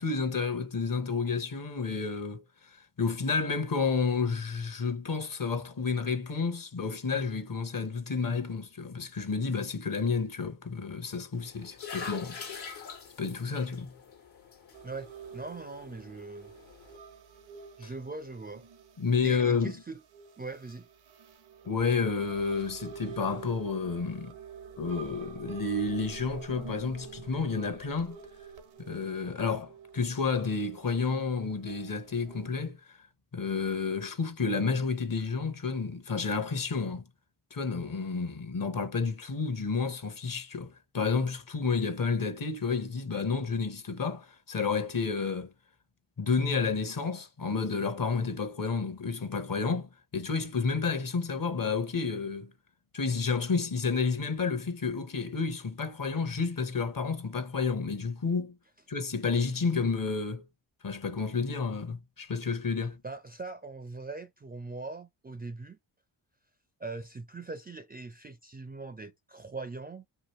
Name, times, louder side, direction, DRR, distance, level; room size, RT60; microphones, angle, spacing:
voice 1, 0.0-2.4 3.0-12.8 13.2-13.9 19.0-19.7 21.6-24.3 24.8-28.2 28.8-33.0 33.3-37.0 37.5-45.5 46.2-52.5 52.9-58.5 58.9-60.4 60.8-63.0, left 4 dB, 45° left, 0.9 m, -30 dB
sound 1, 11.3-17.0, left 6 dB, 70° left, 1.3 m, -44 dB
sound 2, 14.7-32.5, right 6 dB, 80° right, 0.8 m, -48 dB
voice 2, 14.8-16.5 17.8-18.7 19.2-20.0 20.4-20.9 63.0-65.8 66.8-70.1, right 3 dB, 20° right, 0.4 m, -41 dB
2.9 x 2.5 x 2.9 m
supercardioid pair, 50°, 48 cm